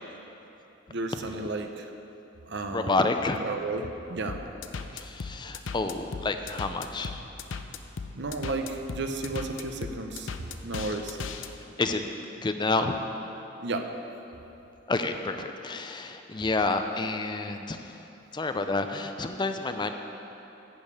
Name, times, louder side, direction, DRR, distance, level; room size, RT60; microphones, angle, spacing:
voice 1, 0.9-1.8 2.5-3.0 3.4-4.4 8.2-10.3 10.6-11.2 13.6-13.9, right 3 dB, 60° right, 5 dB, 0.8 m, -33 dB
voice 2, 2.7-3.5 4.9-7.2 11.8-12.1 12.4-13.0 14.9-17.9 18.3-19.9, left 3 dB, 25° left, 7 dB, 0.5 m, -29 dB
sound 1, 4.3-11.5, left 5 dB, 70° left, 0.6 m, -37 dB
12.0 x 5.3 x 8.3 m, 3.0 s
head